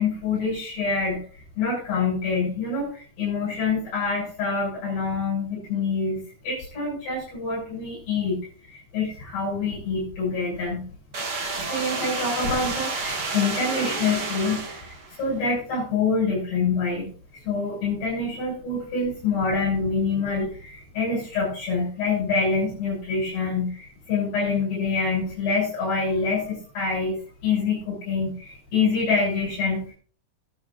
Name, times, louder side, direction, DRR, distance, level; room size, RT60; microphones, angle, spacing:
voice 1, 0.0-10.8 11.6-27.2 27.4-29.9, left 4 dB, 75° left, -5 dB, 9.0 m, -26 dB
sound 1, 11.1-15.2, right 3 dB, 55° right, 1.1 m, -30 dB
24.0 x 8.4 x 2.6 m, 0.42 s
omnidirectional pair, 4.7 m